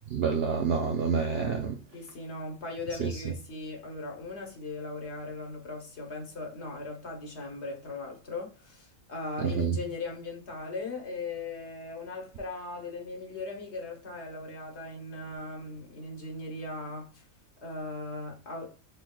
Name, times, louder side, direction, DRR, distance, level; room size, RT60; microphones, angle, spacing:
voice 1, 0.1-1.8 3.0-3.1 9.4-9.8, right 6 dB, 60° right, 0.6 m, -28 dB
voice 2, 1.9-17.2 17.6-18.7, left 3 dB, 50° left, 1.3 m, -38 dB
5.6 x 3.1 x 2.3 m
omnidirectional pair, 1.5 m